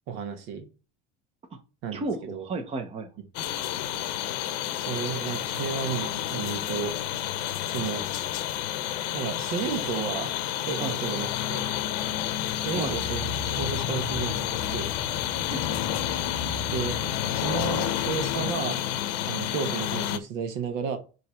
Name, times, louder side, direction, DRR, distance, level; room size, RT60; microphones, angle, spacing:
voice 1, 0.1-0.7 1.8-2.0 2.3-2.4 4.8-7.0 7.7-8.1 9.1-10.4 10.6-11.7 12.6-13.3 13.6-15.0 16.7-17.0 17.3-18.8 19.2-21.0, right 7 dB, 70° right, 1.5 m, -32 dB
voice 2, 1.9-3.1 10.8-11.0 12.7-13.0 15.5-15.8, right 3 dB, 30° right, 1.0 m, -33 dB
sound 1, 3.3-20.2, left 12 dB, 80° left, 0.8 m, -30 dB
sound 2, 11.4-18.6, left 5 dB, 30° left, 0.6 m, -37 dB
5.4 x 3.2 x 5.5 m
supercardioid pair, 115°, 21 cm